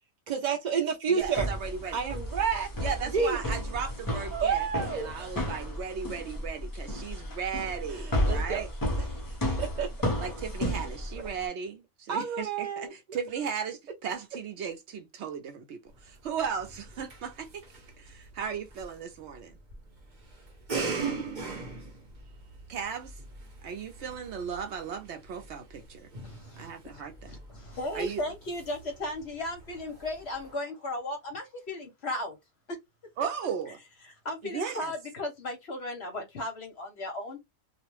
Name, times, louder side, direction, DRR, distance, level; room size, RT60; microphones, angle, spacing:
voice 1, 0.3-1.5 1.9-2.7 3.1-3.4 4.3-5.1 7.9-8.6 9.6-9.9 12.1-12.9, right 6 dB, 85° right, 0.4 m, -29 dB
voice 2, 1.1-2.0 2.8-8.7 10.2-17.6 18.0-19.6 22.7-23.1 23.6-26.1 26.6-27.4 27.9-28.2 33.2-33.8 34.5-34.9, right 7 dB, 65° right, 0.8 m, -36 dB
sound 1, 1.2-11.4, equal, 25° left, 0.5 m, -33 dB
sound 2, 15.9-30.5, right 4 dB, 40° right, 0.9 m, -41 dB
voice 3, 26.2-27.0 27.3-32.4 34.2-37.4, left 1 dB, 55° left, 0.9 m, -36 dB
2.4 x 2.1 x 3.0 m
omnidirectional pair, 1.4 m